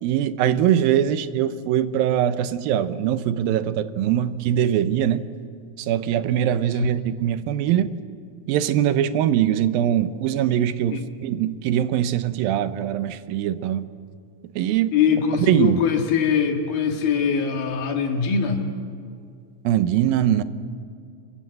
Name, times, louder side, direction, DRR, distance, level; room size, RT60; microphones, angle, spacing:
voice 1, 0.0-5.3 5.8-8.0 8.5-13.8 14.6-14.9 15.5-15.8 19.6-20.4, right 10 dB, 85° right, 13 dB, 2.7 m, -22 dB
voice 2, 14.9-18.6, left 7 dB, 90° left, 3 dB, 4.0 m, -22 dB
27.0 x 23.0 x 7.8 m, 2.3 s
omnidirectional pair, 4.1 m